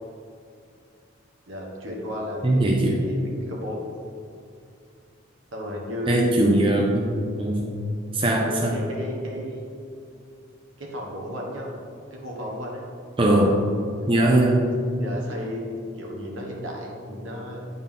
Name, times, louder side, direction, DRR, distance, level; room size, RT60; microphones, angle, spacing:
voice 1, 1.5-3.9 5.5-6.7 8.4-9.6 10.8-11.7 12.1-12.8 14.3-14.4 14.9-17.7, left 1 dB, 75° right, -1 dB, 1.3 m, -34 dB
voice 2, 2.4-3.0 6.1-7.6 8.1-8.8 13.2-13.6 14.1-14.6, right 1 dB, 25° right, -1 dB, 0.5 m, -20 dB
8.8 x 4.1 x 3.7 m, 2.4 s
head